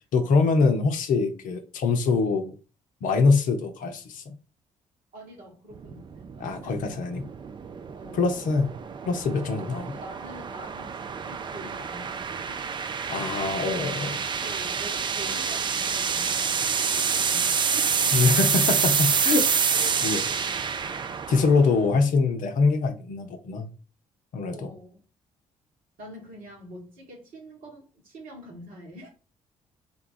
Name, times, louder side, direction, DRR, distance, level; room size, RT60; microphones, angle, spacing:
voice 1, 0.1-2.5 3.0-4.4 6.4-7.3 8.1-8.7 9.1-9.9 13.1-14.2 18.1-19.7 20.0-20.2 21.3-23.7 24.3-24.8, left 4 dB, 55° left, 0.6 m, -24 dB
voice 2, 5.1-7.0 7.9-8.4 9.5-12.6 14.4-18.2 18.5-18.6 19.7-21.2 24.5-25.0 26.0-29.1, right 1 dB, 60° right, 1.4 m, -45 dB
sound 1, 5.8-22.0, right 6 dB, 30° right, 0.4 m, -27 dB
3.6 x 2.3 x 3.8 m
figure-of-eight pair, 45°, 16 cm